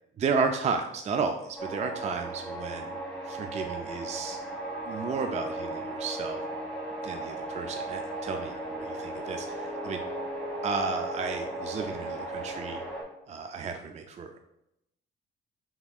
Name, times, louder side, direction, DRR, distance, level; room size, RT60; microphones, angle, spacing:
voice 1, 0.2-3.0 3.2-4.4 4.9-6.4 7.0-10.0 10.6-12.8 13.3-14.4, right 5 dB, 35° right, 5 dB, 0.4 m, -33 dB
sound 1, 1.6-13.0, right 1 dB, 5° left, 1.6 m, -36 dB
5.2 x 3.5 x 2.3 m, 0.83 s
cardioid pair, 90°, 20 cm